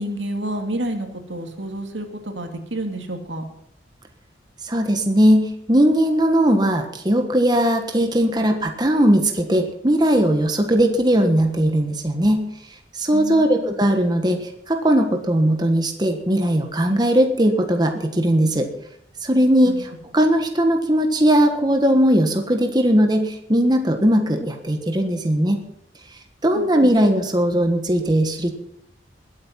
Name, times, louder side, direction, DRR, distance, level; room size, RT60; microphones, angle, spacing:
voice 1, 0.0-3.4 13.1-13.7 19.7-19.8 26.5-26.9, right 1 dB, 85° right, 4 dB, 2.5 m, -29 dB
voice 2, 4.6-12.5 12.9-14.4 14.7-18.7 19.2-19.8 20.1-25.6 26.4-28.5, equal, 20° right, 4 dB, 1.4 m, -18 dB
20.5 x 8.7 x 5.8 m, 0.75 s
head